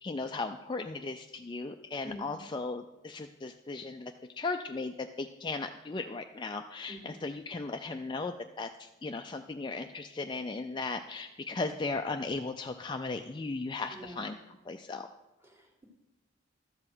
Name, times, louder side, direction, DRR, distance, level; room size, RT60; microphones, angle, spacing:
voice 1, 0.0-14.4 14.7-15.1, left 3 dB, 20° left, 5 dB, 0.4 m, -37 dB
voice 2, 13.9-14.2 15.4-15.8, equal, 10° right, 1 dB, 1.7 m, -45 dB
13.0 x 7.8 x 6.1 m, 1.0 s
head